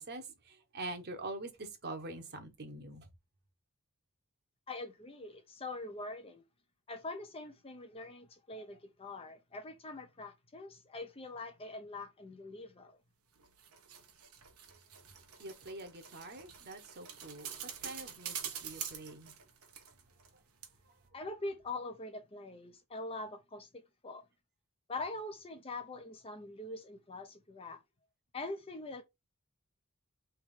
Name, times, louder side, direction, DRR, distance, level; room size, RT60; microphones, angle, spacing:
voice 1, 0.0-3.1 15.4-17.5 17.8-19.3, right 2 dB, 50° right, 1.0 m, -45 dB
voice 2, 4.7-6.4 6.9-13.0 21.1-24.2 24.9-27.8 28.3-29.0, left 2 dB, 25° left, 0.6 m, -43 dB
sound 1, 13.4-20.4 20.6-20.7, right 8 dB, 85° right, 1.1 m, -46 dB
3.5 x 3.2 x 4.8 m
head